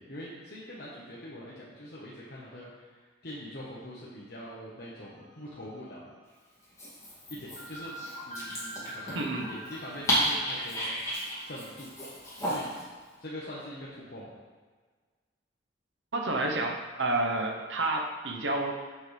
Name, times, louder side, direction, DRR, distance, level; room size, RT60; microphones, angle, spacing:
voice 1, 0.0-6.1 7.3-11.0 11.4-11.9 12.4-12.7 13.2-14.3, left 1 dB, 55° left, -7 dB, 1.2 m, -43 dB
sound 1, 5.1-6.0 6.3-6.4 7.6-12.5, right 1 dB, 40° left, 1.3 m, -46 dB
Dog, 6.6-12.8, equal, 15° left, 2.3 m, -33 dB
voice 2, 16.1-18.7, right 2 dB, 75° right, 2 dB, 1.0 m, -29 dB
7.1 x 6.8 x 3.4 m, 1.4 s
head